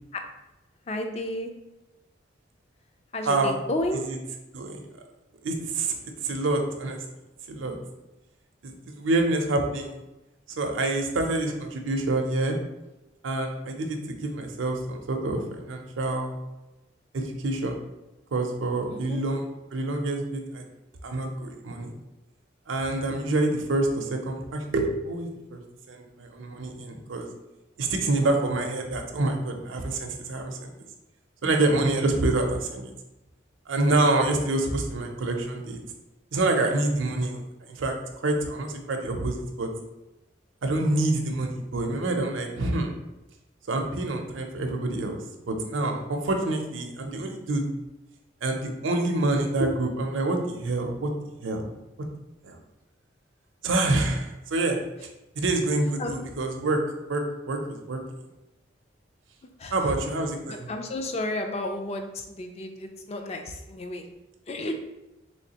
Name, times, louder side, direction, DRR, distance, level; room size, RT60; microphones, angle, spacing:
voice 1, 0.9-1.5 3.1-4.0 18.9-19.2 56.0-56.1 59.6-59.9 60.5-64.0 64.5-64.7, left 1 dB, 30° left, 5 dB, 0.3 m, -32 dB
voice 2, 3.3-3.6 4.1-4.2 4.5-4.8 5.4-5.9 6.2-7.0 7.5-7.8 8.6-10.0 10.6-12.6 13.2-16.4 17.1-17.7 18.3-20.6 21.0-21.9 22.7-25.6 25.9-27.3 27.8-30.7 31.4-32.9 33.7-35.8 36.3-37.4 37.7-39.7 40.6-42.9 43.7-45.2 45.5-47.6 48.4-51.1 51.4-51.6 52.4-52.6 53.6-54.8 55.4-56.8 57.1-58.0 59.7-60.7, right 2 dB, 80° right, 3 dB, 0.5 m, -27 dB
3.3 x 3.1 x 2.8 m, 0.97 s
head